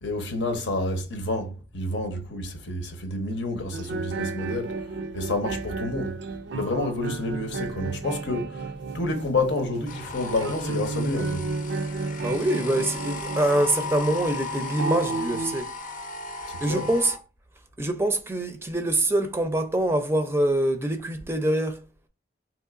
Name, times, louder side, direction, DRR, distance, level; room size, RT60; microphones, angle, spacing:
voice 1, 0.0-4.8 5.1-6.2 6.5-11.7 16.5-16.9, left 2 dB, 85° left, 0.8 m, -29 dB
sound 1, 3.7-15.6, right 3 dB, 80° right, 0.4 m, -33 dB
sound 2, 9.9-17.2, left 3 dB, 45° left, 0.6 m, -36 dB
voice 2, 12.2-15.7 16.6-17.2 17.8-21.8, right 1 dB, 15° right, 0.4 m, -25 dB
3.8 x 2.9 x 2.4 m
head